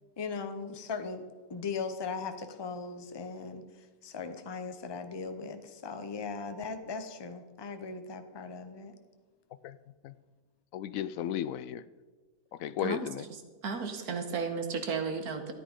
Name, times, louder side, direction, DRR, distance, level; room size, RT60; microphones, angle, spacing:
voice 1, 0.2-1.2 1.5-8.9, left 5 dB, 25° left, 8 dB, 0.6 m, -38 dB
voice 2, 10.7-11.8 12.6-13.3, left 10 dB, 70° left, 15 dB, 0.9 m, -34 dB
voice 3, 13.6-15.5, right 5 dB, 90° right, 6 dB, 1.8 m, -33 dB
13.5 x 9.2 x 5.2 m, 1.4 s
omnidirectional pair, 1.6 m